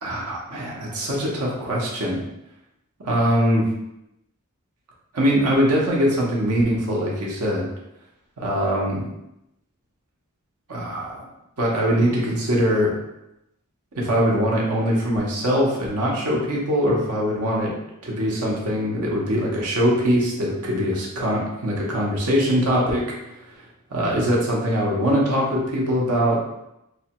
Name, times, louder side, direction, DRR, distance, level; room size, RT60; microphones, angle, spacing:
voice 1, 0.0-2.2 3.0-3.7 5.1-7.7 8.4-9.0 10.7-11.2 11.6-12.9 13.9-17.7 18.0-23.1 23.5-23.6 23.9-26.4, equal, 75° right, -3 dB, 0.7 m, -22 dB
3.1 x 2.2 x 2.9 m, 0.86 s
head